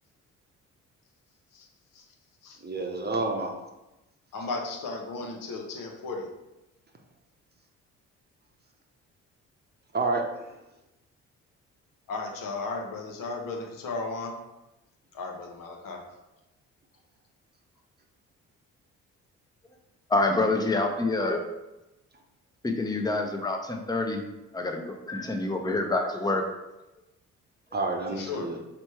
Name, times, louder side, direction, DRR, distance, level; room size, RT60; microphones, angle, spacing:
voice 1, 2.6-3.5 9.9-10.2 27.7-28.6, right 3 dB, 25° right, 2 dB, 0.9 m, -28 dB
voice 2, 4.3-6.3 12.1-14.4 15.1-16.0 28.1-28.5, left 3 dB, 65° left, 1 dB, 1.0 m, -35 dB
voice 3, 20.1-21.4 22.6-24.2 24.5-26.4, left 2 dB, 10° left, 3 dB, 0.7 m, -27 dB
3.4 x 3.1 x 4.4 m, 0.97 s
hypercardioid pair, 50°, 36 cm